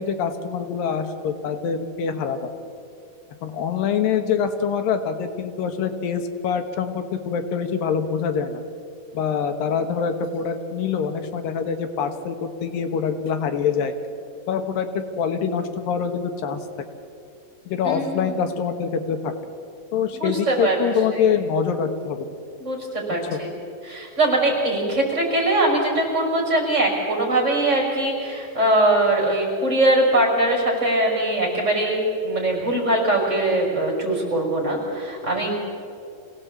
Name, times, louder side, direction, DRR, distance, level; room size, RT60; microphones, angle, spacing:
voice 1, 0.0-2.5 3.4-8.6 9.1-13.9 14.5-16.6 17.7-19.3 19.9-22.3 23.3-23.4, left 6 dB, 85° left, 7 dB, 3.1 m, -25 dB
voice 2, 17.8-18.4 20.1-20.8 22.6-23.5 23.8-35.5, right 1 dB, 20° right, -1 dB, 5.7 m, -22 dB
26.5 x 17.5 x 8.5 m, 2.7 s
omnidirectional pair, 3.9 m